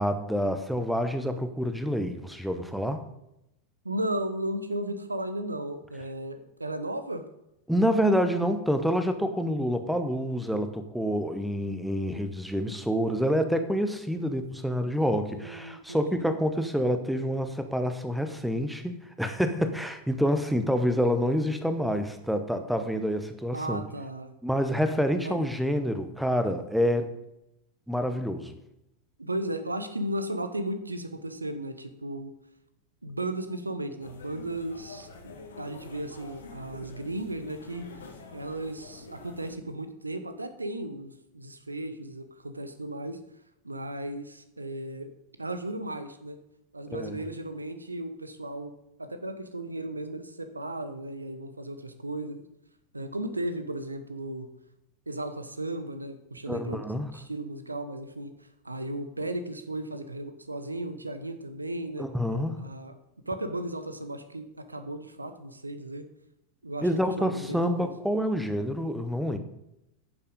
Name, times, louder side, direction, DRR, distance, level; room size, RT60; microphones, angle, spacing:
voice 1, 0.0-3.0 7.7-23.8 24.4-27.1 27.9-28.6 46.9-47.2 56.5-57.1 62.0-62.7 66.8-69.4, equal, ahead, 8 dB, 1.0 m, -27 dB
voice 2, 3.8-7.2 15.3-16.2 23.5-24.4 25.2-25.3 29.2-32.3 33.0-37.9 38.3-43.2 43.6-45.1 45.4-46.4 46.7-48.7 49.0-52.4 52.9-54.5 55.1-56.8 57.1-62.1 62.6-62.9 63.3-66.0 66.6-67.9, right 1 dB, 80° right, 9 dB, 0.9 m, -35 dB
sound 1, 34.0-39.5, left 3 dB, 65° left, 1.7 m, -47 dB
10.0 x 7.1 x 5.3 m, 0.85 s
figure-of-eight pair, 90°, 0 cm